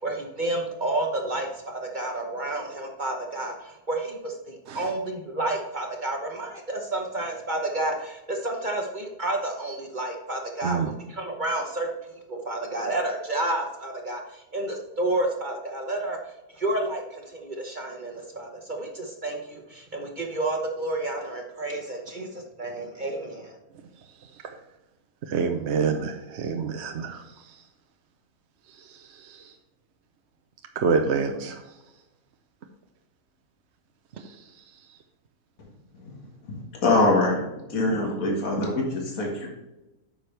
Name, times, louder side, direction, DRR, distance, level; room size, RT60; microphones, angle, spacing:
voice 1, 0.0-11.9 12.3-16.2 16.5-23.6, right 2 dB, 35° right, 2 dB, 1.0 m, -30 dB
voice 2, 25.3-27.2 29.2-29.5 30.8-31.6, right 5 dB, 55° right, 5 dB, 0.9 m, -26 dB
voice 3, 36.5-39.5, left 2 dB, 65° left, -1 dB, 2.1 m, -24 dB
9.3 x 6.2 x 3.3 m, 0.98 s
omnidirectional pair, 1.6 m